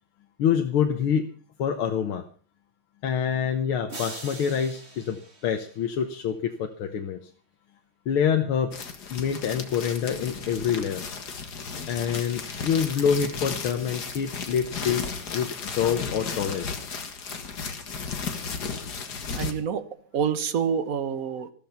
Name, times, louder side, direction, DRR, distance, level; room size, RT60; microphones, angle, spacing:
voice 1, 0.4-1.3 1.6-2.2 3.0-7.2 8.1-8.8 9.1-11.0 11.9-16.7, left 8 dB, 90° left, 5 dB, 2.0 m, -26 dB
sound 1, 3.9-6.2, right 3 dB, 30° right, 2.4 m, -42 dB
sound 2, 8.7-19.5, left 5 dB, 50° left, 2.2 m, -34 dB
voice 2, 19.3-21.5, right 7 dB, 45° right, 12 dB, 1.5 m, -27 dB
14.5 x 14.0 x 5.7 m, 0.42 s
omnidirectional pair, 2.2 m